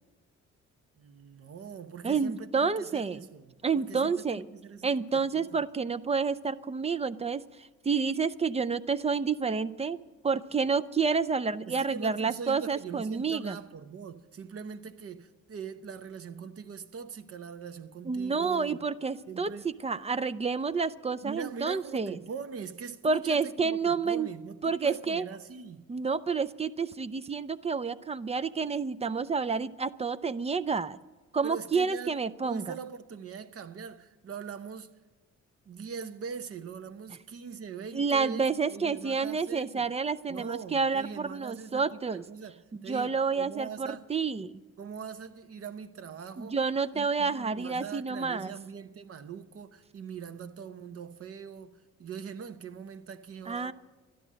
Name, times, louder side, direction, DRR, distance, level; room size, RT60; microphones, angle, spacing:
voice 1, 1.0-5.6 11.7-18.8 19.3-19.7 21.2-25.9 31.4-32.2 32.4-34.9 35.7-39.9 40.3-44.1 44.8-46.6 46.9-53.7, right 6 dB, 50° right, 0.9 m, -42 dB
voice 2, 2.0-3.2 3.6-4.5 4.8-10.0 10.2-13.6 18.1-22.1 23.0-24.3 24.6-25.3 25.9-31.0 31.3-32.6 37.9-42.2 42.9-44.6 46.4-48.5 53.5-53.7, right 5 dB, 20° right, 0.4 m, -29 dB
12.0 x 11.5 x 7.5 m
cardioid pair, 90°, 30 cm